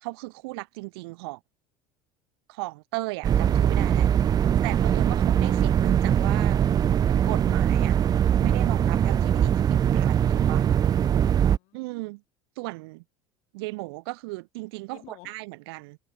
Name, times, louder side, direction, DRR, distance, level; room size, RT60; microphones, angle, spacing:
voice 1, 0.0-1.4 2.5-4.1 4.6-6.6 7.3-8.0 8.4-10.7 11.7-12.2 12.6-13.0 13.5-16.0, right 24 dB, 75° right, 1.5 m, -36 dB
sound 1, 3.2-11.6, right 9 dB, 30° right, 0.4 m, -22 dB
voice 2, 3.8-4.6 11.1-11.8 14.9-15.4, left 23 dB, 65° left, 4.7 m, -52 dB
hypercardioid pair, 85°, 13 cm